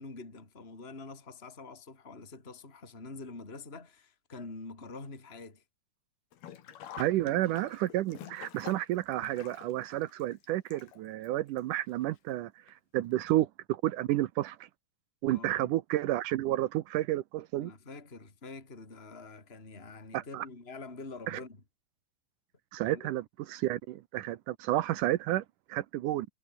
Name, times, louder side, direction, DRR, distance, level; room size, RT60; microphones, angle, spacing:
voice 1, 0.0-5.6 15.3-15.7 17.5-21.6 22.9-23.0, left 3 dB, 15° left, 4.0 m, -46 dB
Sink (filling or washing), 6.3-11.3 11.6-11.7 12.7-12.8 13.1-13.2, left 10 dB, 70° left, 4.0 m, -48 dB
voice 2, 7.0-14.7 15.2-17.7 20.1-20.5 21.3-21.4 22.7-25.4 25.7-26.3, right 15 dB, 80° right, 1.9 m, -31 dB
omnidirectional pair, 4.8 m